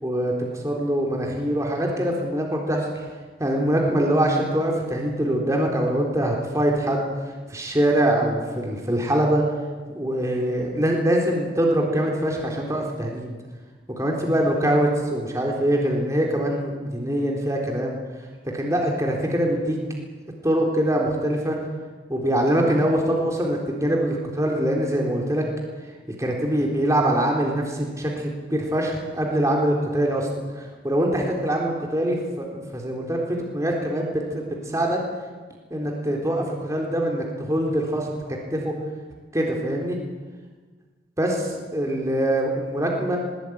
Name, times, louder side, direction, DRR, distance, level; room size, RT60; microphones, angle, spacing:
voice 1, 0.0-3.1 3.4-7.0 7.5-9.4 9.9-13.3 14.0-18.0 18.5-19.8 20.4-21.6 22.1-25.5 26.2-30.3 30.6-35.0 35.7-38.7 39.3-40.0 41.2-43.2, right 1 dB, 20° right, 0 dB, 3.8 m, -23 dB
21.0 x 19.5 x 9.4 m, 1.4 s
head